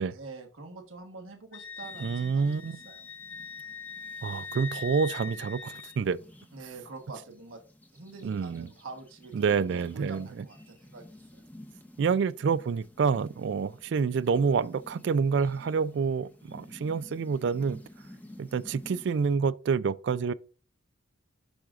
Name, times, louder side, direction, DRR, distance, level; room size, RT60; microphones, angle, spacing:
voice 1, 0.1-3.0 6.5-7.6 7.9-11.4, right 3 dB, 90° right, 1.3 m, -46 dB
Wind instrument woodwind instrument, 1.5-6.0, left 5 dB, 85° left, 0.7 m, -42 dB
sound 1, 1.8-19.4, left 1 dB, 10° left, 0.8 m, -53 dB
voice 2, 2.0-2.8 4.2-6.2 8.2-8.7 9.3-10.4 12.0-17.8 18.4-20.3, right 5 dB, 60° right, 0.3 m, -28 dB
10.0 x 6.1 x 2.4 m
head